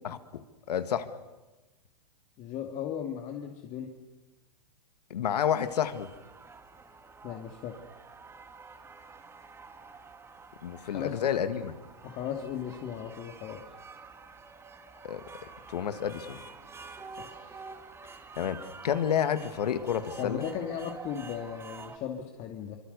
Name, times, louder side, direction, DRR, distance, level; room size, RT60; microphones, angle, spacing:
voice 1, 0.0-0.4 0.7-1.1 5.1-6.1 10.6-11.7 15.0-15.2 15.7-16.4 18.4-20.5, left 9 dB, 70° left, 11 dB, 1.9 m, -30 dB
voice 2, 2.4-3.9 7.2-7.8 10.9-11.2 12.0-13.6 17.2-17.6 20.2-22.8, left 9 dB, 35° left, 3 dB, 2.2 m, -37 dB
sound 1, 5.6-22.0, right 4 dB, 10° right, 2.2 m, -48 dB
24.5 x 24.5 x 6.8 m, 1.1 s
hypercardioid pair, 120°, 21 cm